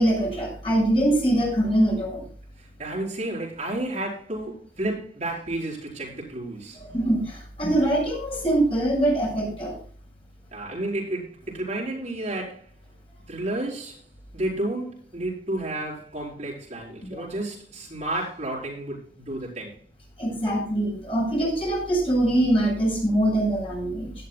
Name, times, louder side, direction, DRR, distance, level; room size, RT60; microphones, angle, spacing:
voice 1, 0.0-2.2 6.8-9.8 17.1-17.2 20.2-24.1, right 1 dB, 30° left, 6.3 m, -23 dB
voice 2, 2.6-6.8 10.5-12.7 13.3-14.0 14.3-19.8, right 1 dB, 40° right, 4.2 m, -31 dB
17.0 x 11.5 x 2.2 m
head